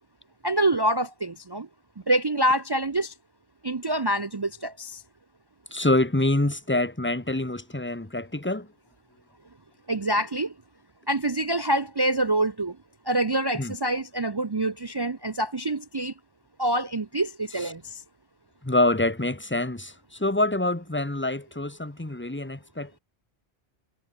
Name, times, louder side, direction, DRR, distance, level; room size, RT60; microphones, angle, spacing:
voice 1, 0.4-1.7 2.1-3.1 3.6-5.0 9.9-10.5 11.1-12.8 13.1-16.1 16.6-18.0, right 1 dB, 30° right, 0.5 m, -26 dB
voice 2, 5.7-8.7 13.6-13.7 17.6-17.7 18.6-23.0, left 2 dB, 10° left, 1.4 m, -26 dB
omnidirectional pair, 1.1 m